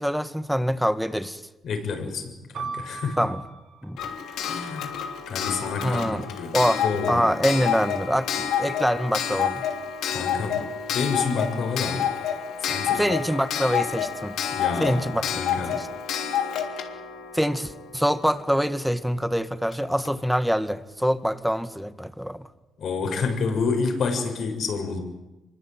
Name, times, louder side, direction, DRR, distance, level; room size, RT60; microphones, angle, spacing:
voice 1, 0.0-1.4 3.2-3.4 3.8-4.0 5.8-6.3 6.5-6.8 7.1-9.7 12.9-14.4 14.8-15.2 15.8-15.9 17.3-22.5, equal, ahead, 1.7 m, -25 dB
voice 2, 1.6-3.2 4.5-4.9 5.3-7.3 10.1-12.1 12.6-13.0 14.5-15.0 15.3-15.9 22.8-25.0, left 4 dB, 65° left, 7.0 m, -29 dB
sound 1, 2.5-6.4 7.2-7.9, right 5 dB, 60° right, 3.7 m, -41 dB
Clock, 4.0-18.6 19.7-19.8 20.0-20.1, left 8 dB, 80° left, 3.4 m, -29 dB
26.0 x 23.5 x 9.2 m
cardioid pair, 90°, 0 cm